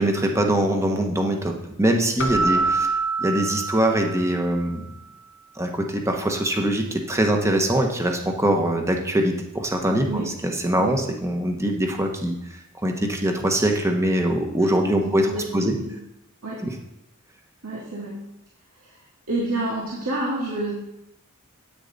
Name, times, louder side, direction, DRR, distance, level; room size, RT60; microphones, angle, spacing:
voice 1, 0.0-2.9 3.2-4.8 5.6-12.4 12.8-15.3 15.5-15.8 16.6-16.7, right 1 dB, 15° right, 3 dB, 1.1 m, -23 dB
Keyboard (musical), 2.2-4.6, right 3 dB, 60° left, 1.1 m, -25 dB
voice 2, 15.0-15.9 16.4-16.6 17.6-18.2 19.3-20.8, right 2 dB, 90° right, -5 dB, 2.0 m, -29 dB
9.9 x 8.7 x 4.0 m, 0.83 s
head